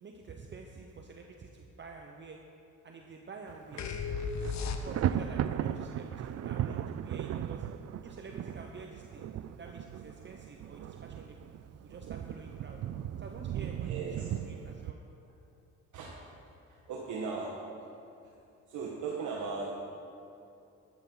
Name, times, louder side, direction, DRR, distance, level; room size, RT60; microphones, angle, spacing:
voice 1, 0.0-2.4 2.8-3.9 4.6-7.6 8.0-9.3 9.6-11.5 11.8-12.8 13.2-15.0, right 4 dB, 40° right, 2 dB, 1.0 m, -48 dB
Thunder, 3.5-3.8 4.1-14.9, right 10 dB, 55° right, 0.5 m, -37 dB
sound 1, 3.8-5.3, left 4 dB, 65° left, 1.0 m, -35 dB
voice 2, 13.8-14.3 15.9-16.1 16.9-17.5 17.8-17.9 18.2-18.3 18.7-19.7, right 4 dB, 75° right, -2 dB, 1.5 m, -37 dB
12.5 x 12.5 x 4.0 m, 2.7 s
cardioid pair, 90°, 30 cm